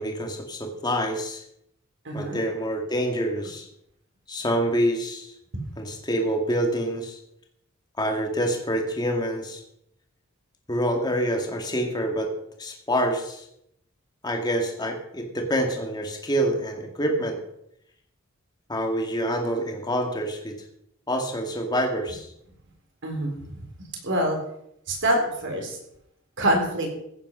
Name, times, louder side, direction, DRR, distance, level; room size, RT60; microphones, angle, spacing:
voice 1, 0.0-1.4 2.1-3.7 4.3-5.3 5.8-7.2 8.0-9.6 10.7-12.3 12.6-13.5 14.2-17.4 18.7-20.6 21.1-22.3, equal, 20° left, 3 dB, 2.1 m, -26 dB
voice 2, 2.0-2.4 23.0-23.6 24.0-24.4 24.9-25.8 26.4-26.9, right 1 dB, 55° right, 2 dB, 4.0 m, -25 dB
15.5 x 9.2 x 5.5 m, 0.76 s
head